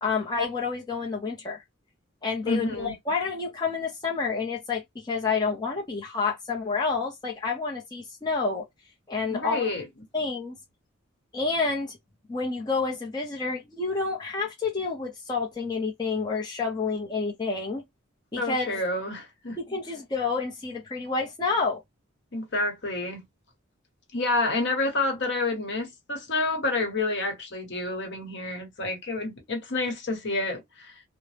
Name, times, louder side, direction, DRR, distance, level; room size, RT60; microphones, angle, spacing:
voice 1, 0.0-1.6 2.2-8.6 9.1-9.7 10.1-10.6 11.3-12.0 12.3-17.8 18.3-18.8 19.7-21.8, left 4 dB, 20° left, 0.5 m, -29 dB
voice 2, 2.4-2.9 9.3-9.9 18.4-19.6 22.3-23.2 24.1-31.0, left 2 dB, 55° left, 1.0 m, -29 dB
2.6 x 2.0 x 3.2 m
head